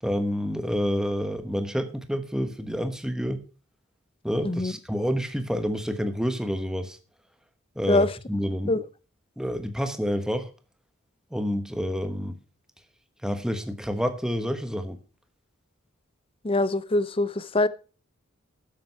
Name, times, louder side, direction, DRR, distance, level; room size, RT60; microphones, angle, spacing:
voice 1, 0.0-3.4 4.2-7.0 7.8-8.7 9.4-10.5 11.3-12.4 13.2-15.0, equal, 5° right, 1.1 m, -28 dB
voice 2, 16.4-17.7, left 2 dB, 25° left, 0.6 m, -23 dB
12.0 x 7.6 x 5.6 m
head